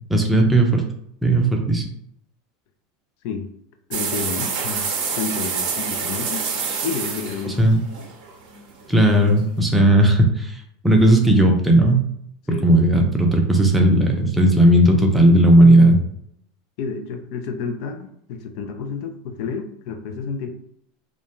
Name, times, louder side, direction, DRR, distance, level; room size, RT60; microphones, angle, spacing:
voice 1, 0.1-0.8 1.2-1.8 7.4-7.8 8.9-10.5 10.8-12.0 12.6-16.0, right 1 dB, 5° right, 1 dB, 0.5 m, -15 dB
voice 2, 3.9-4.9 5.1-6.5 6.8-7.6 12.5-13.0 15.3-15.4 16.8-20.5, left 5 dB, 60° left, 5 dB, 0.3 m, -30 dB
sound 1, 3.9-8.8, right 5 dB, 55° right, 0.6 m, -27 dB
2.3 x 2.1 x 2.9 m, 0.72 s
supercardioid pair, 120°, 0 cm